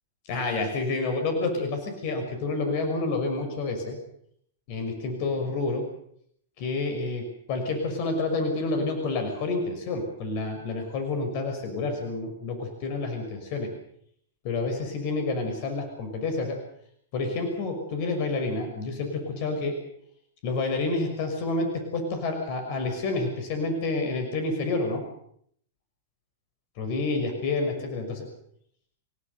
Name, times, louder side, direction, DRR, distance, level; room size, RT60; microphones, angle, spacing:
voice 1, 0.3-4.0 4.7-5.8 6.6-13.7 14.4-16.6 17.1-19.7 20.4-25.0 26.8-28.2, left 3 dB, 45° left, 5 dB, 6.0 m, -29 dB
29.0 x 17.0 x 6.9 m, 0.68 s
figure-of-eight pair, 100°, 0 cm